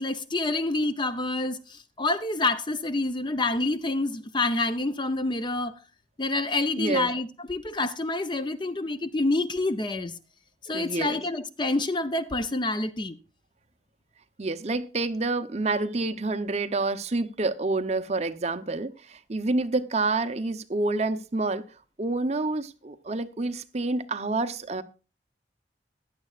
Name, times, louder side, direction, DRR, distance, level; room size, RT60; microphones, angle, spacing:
voice 1, 0.0-5.8 6.2-10.1 10.6-13.2, left 2 dB, 25° left, 0.6 m, -27 dB
voice 2, 6.8-7.1 10.7-11.2 14.4-21.6 22.0-24.8, right 3 dB, 35° right, 0.7 m, -28 dB
15.5 x 11.0 x 2.4 m
head